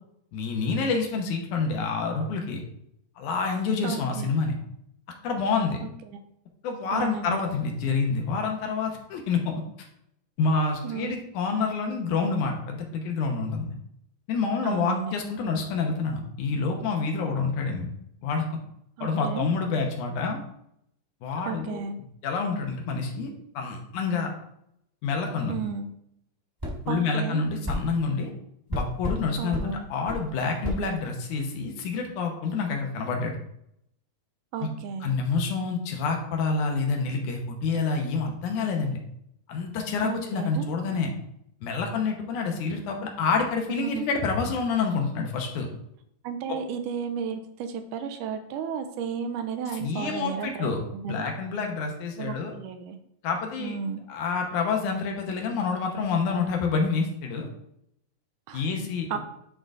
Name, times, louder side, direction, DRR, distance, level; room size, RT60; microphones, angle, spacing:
voice 1, 0.3-2.6 3.2-4.5 5.2-5.8 6.6-9.5 10.4-13.7 14.3-17.9 18.2-18.5 19.0-20.4 21.2-21.8 22.2-24.3 25.0-25.6 26.9-28.3 28.7-33.4 34.6-34.7 35.0-39.0 39.5-41.1 41.6-45.7 46.5-46.6 49.8-50.8 51.1-52.5 53.2-53.8 54.1-57.5 58.5-59.2, left 4 dB, 75° left, 2 dB, 2.3 m, -28 dB
voice 2, 3.8-4.3 5.8-6.2 6.9-7.4 10.8-11.2 14.6-15.1 19.0-19.5 21.5-22.0 25.5-25.9 26.9-27.5 29.4-29.8 34.5-35.2 40.0-40.7 43.7-44.1 46.2-51.3 52.2-53.0 53.6-54.0 58.5-58.7 59.1-59.2, right 6 dB, 80° right, 7 dB, 2.1 m, -33 dB
sound 1, 26.6-26.8 27.6-27.8 28.7-29.2 29.5-29.7 30.1-30.2 30.6-30.8, left 1 dB, 10° right, 0.9 m, -29 dB
10.0 x 3.8 x 3.8 m, 0.75 s
omnidirectional pair, 3.8 m